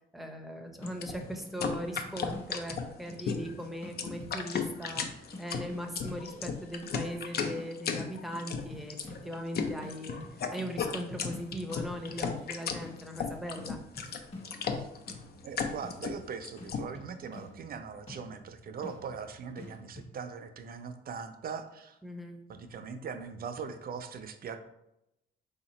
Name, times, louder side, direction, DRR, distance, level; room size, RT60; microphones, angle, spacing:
voice 1, 0.1-9.0 9.2-10.3 10.5-14.1 22.0-22.4, equal, ahead, 2 dB, 0.6 m, -39 dB
sound 1, 0.8-7.2 7.6-9.5 9.8-20.1, left 1 dB, 30° left, 1.3 m, -49 dB
sound 2, 0.9-16.8, left 6 dB, 55° left, 0.5 m, -35 dB
voice 2, 15.4-22.0 22.5-24.6, right 6 dB, 50° right, 8 dB, 0.5 m, -41 dB
3.4 x 2.9 x 4.2 m, 0.86 s
cardioid pair, 90°, 20 cm